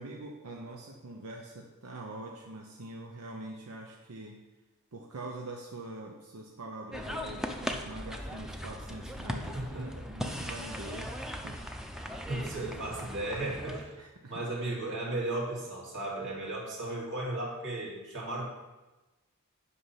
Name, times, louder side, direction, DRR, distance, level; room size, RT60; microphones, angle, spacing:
voice 1, 0.0-4.4 4.9-11.6 11.8-12.8 14.0-14.9, right 2 dB, 90° right, 0 dB, 0.9 m, -44 dB
sound 1, 6.9-13.8, equal, ahead, 0.6 m, -38 dB
voice 2, 9.5-10.0 12.3-13.9 14.3-18.5, right 2 dB, 55° right, -4 dB, 2.7 m, -35 dB
8.4 x 5.6 x 5.7 m, 1.1 s
head